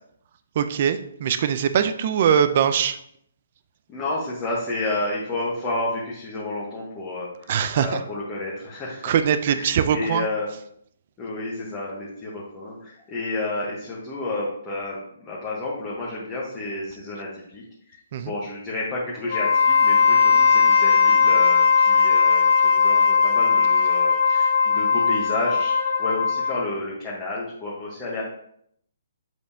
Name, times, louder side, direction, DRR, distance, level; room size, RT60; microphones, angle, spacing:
voice 1, 0.6-3.0 7.5-8.0 9.0-10.3 18.1-18.3, right 8 dB, 35° right, 11 dB, 0.5 m, -22 dB
voice 2, 3.9-9.1 9.4-10.5 11.2-17.6 18.2-28.2, left 2 dB, 15° left, -6 dB, 1.1 m, -31 dB
Wind instrument woodwind instrument, 19.2-26.7, left 5 dB, 45° left, 1.9 m, -18 dB
7.8 x 5.2 x 2.7 m, 0.69 s
hypercardioid pair, 170°, 0 cm